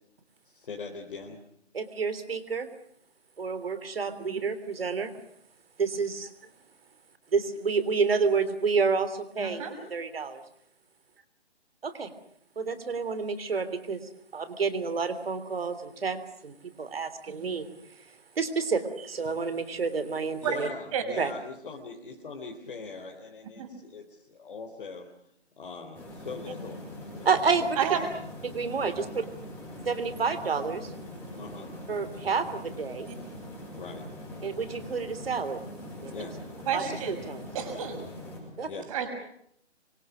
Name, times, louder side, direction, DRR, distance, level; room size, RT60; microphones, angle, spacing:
voice 1, 0.4-1.4 20.4-25.1 25.6-26.8 27.1-28.0 28.8-29.1 31.3-31.8 33.8-34.1 36.1-36.4 38.6-39.0, left 4 dB, 50° left, 1 dB, 3.9 m, -41 dB
voice 2, 1.7-2.7 3.4-5.1 5.8-6.3 7.3-9.6 9.9-10.4 11.8-12.1 12.6-17.7 18.4-20.7 21.2-21.3 27.3-27.7 28.4-29.0 29.9-30.9 31.9-33.1 34.4-35.6 36.0-36.1 36.7-37.4 38.6-38.7, right 5 dB, 60° right, 12 dB, 3.4 m, -29 dB
voice 3, 9.4-9.7 17.3-17.6 20.4-20.6 20.9-21.0 23.6-23.7 27.8-28.0 33.1-33.2 36.7-37.2 37.5-38.0 38.9-39.1, right 8 dB, 30° right, 5 dB, 6.5 m, -31 dB
sound 1, 25.9-38.4, left 1 dB, 5° left, 7.6 m, -42 dB
27.0 x 24.0 x 6.2 m, 0.70 s
figure-of-eight pair, 150°, 34 cm